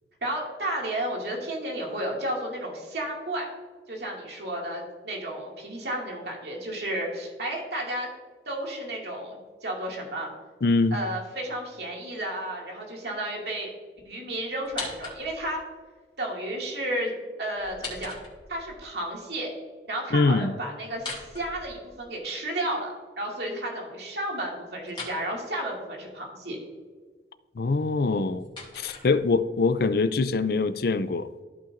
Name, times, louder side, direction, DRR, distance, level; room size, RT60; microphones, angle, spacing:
voice 1, 0.2-3.5 3.9-8.1 8.5-10.3 10.9-13.7 14.1-15.6 16.2-17.1 17.4-18.2 18.5-19.5 19.9-26.6, right 1 dB, 65° right, 2.4 m, -32 dB
voice 2, 10.6-11.0 20.1-20.5 27.6-28.5 28.8-31.3, left 3 dB, 60° left, 0.4 m, -23 dB
sound 1, 14.6-15.6 17.6-18.8 20.9-22.2 24.9-25.2 27.9-29.6, left 3 dB, 30° left, 2.5 m, -40 dB
14.0 x 5.7 x 2.6 m
head